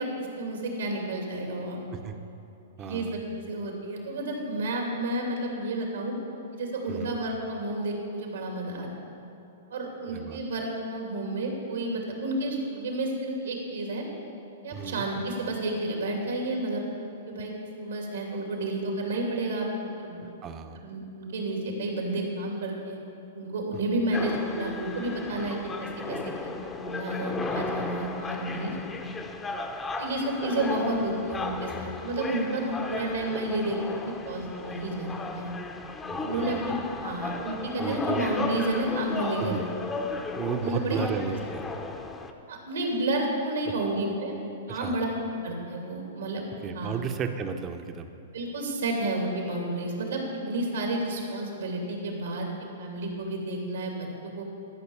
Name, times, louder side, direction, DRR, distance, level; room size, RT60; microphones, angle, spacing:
voice 1, 0.0-1.8 2.8-6.1 6.5-8.9 9.7-14.0 14.6-16.8 17.3-17.5 17.8-19.7 20.0-20.2 20.7-23.0 23.3-26.5 26.8-29.1 30.0-35.5 36.2-39.6 40.6-41.0 42.5-44.4 44.7-45.1 45.4-46.5 46.7-47.0 48.3-52.5 52.8-54.4, right 1 dB, 80° right, 0 dB, 2.7 m, -31 dB
voice 2, 2.8-3.2 6.9-7.2 10.1-10.4 14.7-15.1 20.4-20.8 36.1-36.6 37.8-38.3 39.4-39.6 40.3-41.6 43.7-43.8 44.7-45.0 46.6-48.1, right 7 dB, 30° right, 7 dB, 0.8 m, -33 dB
sound 1, 24.1-42.3, left 3 dB, 15° left, 0.7 m, -35 dB
13.5 x 6.2 x 7.2 m, 2.9 s
hypercardioid pair, 130°, 0 cm